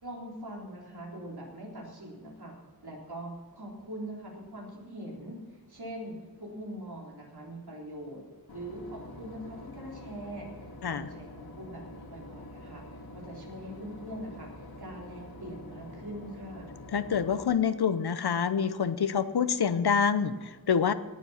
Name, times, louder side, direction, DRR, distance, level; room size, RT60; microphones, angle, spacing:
voice 1, 0.0-2.5 2.8-5.4 5.7-8.2 8.5-10.5 10.9-12.8 13.1-16.7, right 1 dB, 85° right, -2 dB, 3.8 m, -42 dB
Boat Water vehicle / Engine, 8.5-17.5, left 1 dB, 70° left, 1.9 m, -46 dB
voice 2, 16.9-20.9, left 7 dB, 90° left, 13 dB, 0.7 m, -27 dB
18.5 x 7.3 x 5.7 m, 1.4 s
wide cardioid pair, 70°, 37 cm